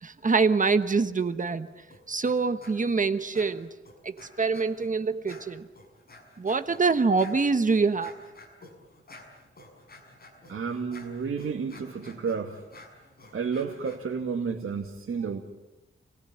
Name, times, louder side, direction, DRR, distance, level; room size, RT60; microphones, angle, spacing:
voice 1, 0.0-1.7 2.1-3.7 4.0-5.7 6.4-8.1, right 4 dB, 40° right, 9 dB, 1.2 m, -25 dB
sound 1, 1.9-2.4 2.6-3.0 3.3-4.9 5.3-14.0, left 2 dB, 45° left, 6.1 m, -51 dB
voice 2, 10.5-12.6 13.3-15.4, right 5 dB, 80° right, 2 dB, 2.2 m, -31 dB
29.5 x 20.5 x 9.9 m, 1.0 s
wide cardioid pair, 175°, 21 cm